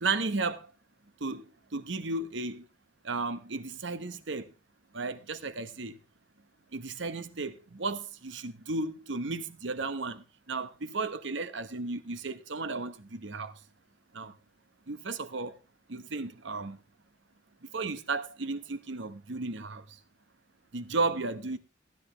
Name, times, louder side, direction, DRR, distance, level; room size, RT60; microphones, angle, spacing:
voice 1, 0.0-0.7 1.2-2.6 3.0-4.5 4.9-6.0 6.7-13.5 14.1-14.3 14.9-15.5 15.9-16.8 17.7-19.8 20.7-21.6, right 3 dB, 65° right, 1.0 m, -34 dB
15.0 x 10.0 x 3.3 m
head